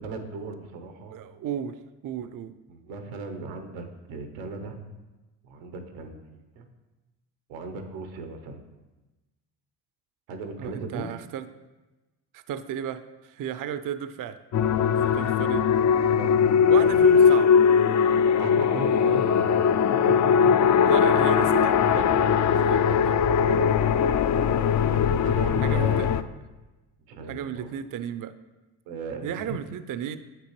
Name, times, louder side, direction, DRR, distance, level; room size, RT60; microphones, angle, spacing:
voice 1, 0.0-1.1 2.7-4.8 5.4-6.7 7.5-8.6 10.3-11.1 15.0-15.2 16.1-17.1 18.4-19.6 23.4-23.7 24.9-26.0 27.1-27.7 28.9-29.6, right 3 dB, 85° right, 6 dB, 0.9 m, -37 dB
voice 2, 1.1-1.8 2.0-2.5 10.6-11.5 12.3-14.4 15.1-15.6 16.7-17.6 20.8-23.2 25.6-26.2 27.3-28.3 29.2-30.2, right 9 dB, 45° right, 12 dB, 0.5 m, -34 dB
sound 1, 14.5-26.2, left 7 dB, 40° left, 0.4 m, -20 dB
7.5 x 5.9 x 3.1 m, 1.1 s
hypercardioid pair, 50°, 48 cm